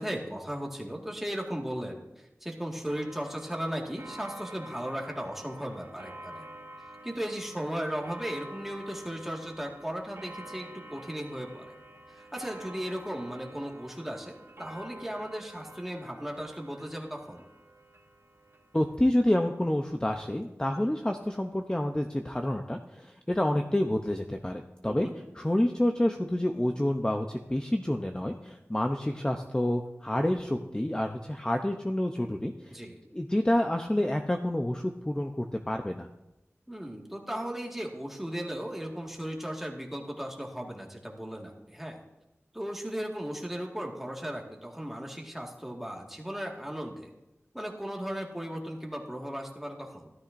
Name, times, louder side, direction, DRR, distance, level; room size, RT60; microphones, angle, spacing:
voice 1, 0.0-6.4 7.0-11.7 12.1-17.5 24.9-25.1 32.7-33.0 36.7-42.0 42.5-47.1 47.5-50.1, equal, 5° right, 0 dB, 1.8 m, -36 dB
Clock, 2.8-19.0, right 1 dB, 55° right, 1.4 m, -48 dB
voice 2, 18.7-32.8 33.1-36.1, left 1 dB, 15° left, 4 dB, 0.6 m, -28 dB
13.0 x 12.5 x 2.6 m, 0.96 s
wide cardioid pair, 60°, 5 cm